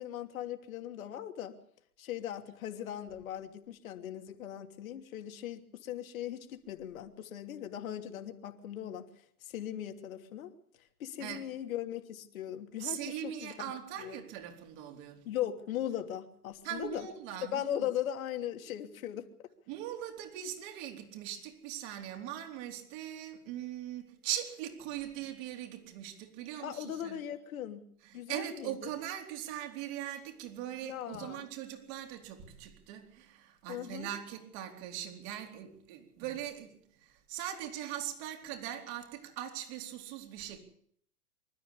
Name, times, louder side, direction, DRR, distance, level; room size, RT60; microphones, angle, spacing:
voice 1, 0.0-1.6 2.0-9.0 9.4-10.5 11.0-13.7 14.0-14.2 15.2-17.1 17.4-19.3 26.6-27.8 28.1-28.9 30.8-31.4 33.7-34.1, left 11 dB, 65° left, 3.0 m, -39 dB
voice 2, 12.8-15.3 16.6-17.9 19.7-27.2 28.0-40.6, right 11 dB, 45° right, 4.1 m, -41 dB
25.0 x 13.5 x 8.5 m
hypercardioid pair, 110°, 45 cm